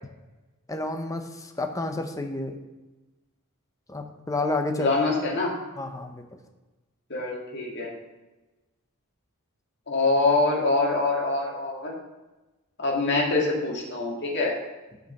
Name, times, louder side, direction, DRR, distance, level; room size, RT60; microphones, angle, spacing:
voice 1, 0.7-2.6 3.9-4.9 5.8-6.2, left 2 dB, 15° left, 5 dB, 0.8 m, -30 dB
voice 2, 4.8-5.5 7.1-7.9 9.9-11.9 12.8-14.5, left 3 dB, 50° left, -2 dB, 2.2 m, -24 dB
8.4 x 5.3 x 6.5 m, 1.1 s
head